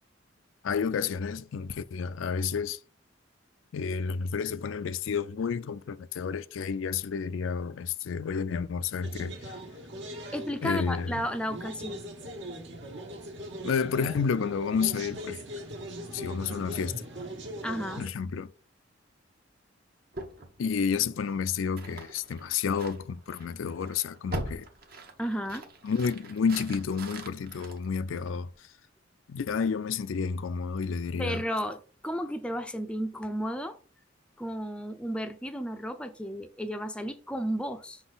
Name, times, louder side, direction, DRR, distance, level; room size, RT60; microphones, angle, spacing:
voice 1, 0.6-2.8 3.7-9.5 10.6-11.2 13.6-15.4 16.1-17.0 18.0-18.5 20.6-24.7 25.8-28.5 29.3-31.4, left 6 dB, 80° left, 0.4 m, -30 dB
sound 1, 9.0-18.1, right 1 dB, 65° right, 1.3 m, -41 dB
voice 2, 10.3-12.0 17.6-18.0 25.2-25.7 31.2-33.8 34.4-38.0, equal, 5° left, 0.4 m, -33 dB
sound 2, 20.1-28.6, right 2 dB, 50° right, 0.9 m, -43 dB
6.0 x 4.0 x 3.9 m
head